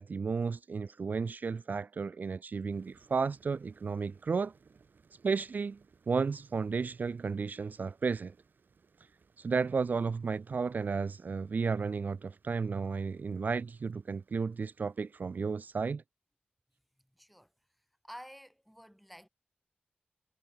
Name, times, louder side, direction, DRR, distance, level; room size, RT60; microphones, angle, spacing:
voice 1, 0.0-4.5 5.2-5.8 6.1-8.3 9.4-16.0, right 5 dB, 60° right, 0.4 m, -33 dB
sound 1, 2.7-15.9, right 5 dB, 80° right, 5.9 m, -66 dB
voice 2, 17.1-17.5 18.0-19.3, equal, ahead, 3.8 m, -50 dB
wide cardioid pair, 70°, 3 cm